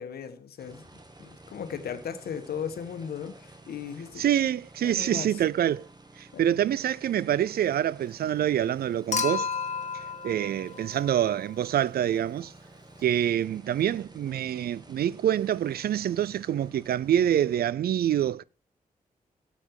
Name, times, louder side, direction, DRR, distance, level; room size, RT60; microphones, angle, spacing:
voice 1, 0.0-4.3 4.8-5.4 6.3-6.5, left 7 dB, 90° left, 1.3 m, -37 dB
sound 1, 0.6-17.6, right 2 dB, 25° right, 2.0 m, -52 dB
voice 2, 4.2-5.9 6.2-9.5 10.2-12.5 13.0-18.4, right 10 dB, 85° right, 0.4 m, -26 dB
Human group actions / Chink clink / Liquid, 9.1-11.5 13.0-13.1, left 5 dB, 50° left, 1.7 m, -32 dB
13.0 x 7.7 x 4.7 m
cardioid pair, 55°, 16 cm